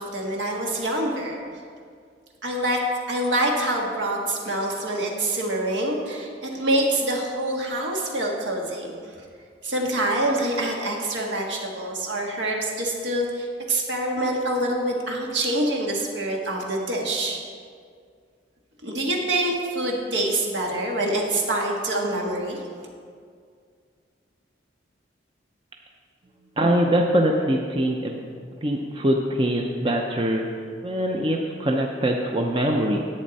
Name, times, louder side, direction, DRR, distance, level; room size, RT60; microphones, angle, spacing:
voice 1, 0.0-1.4 2.4-2.8 3.1-8.9 9.6-17.4 18.8-22.9, right 1 dB, 75° right, -1 dB, 1.7 m, -26 dB
voice 2, 26.6-28.2 28.6-30.5 30.8-33.1, right 1 dB, 25° right, 1 dB, 0.6 m, -23 dB
11.0 x 8.6 x 4.1 m, 2.1 s
head